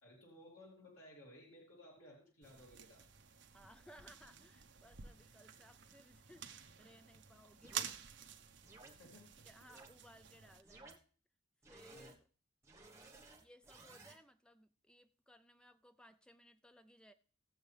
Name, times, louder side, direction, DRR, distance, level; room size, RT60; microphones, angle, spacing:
voice 1, 0.0-3.0 9.0-9.5 11.9-12.1, left 1 dB, 90° left, 2.9 m, -58 dB
sound 1, 2.4-10.6, right 9 dB, 65° right, 0.9 m, -50 dB
voice 2, 3.5-7.9 9.4-11.0 11.7-12.2 12.7-13.1 13.3-17.1, equal, 5° left, 0.5 m, -62 dB
sound 2, 7.6-7.9 8.6-8.9 9.7-9.9 10.6-11.0 11.6-12.2 12.6-14.2, right 3 dB, 15° right, 1.2 m, -57 dB
17.5 x 7.1 x 3.4 m
head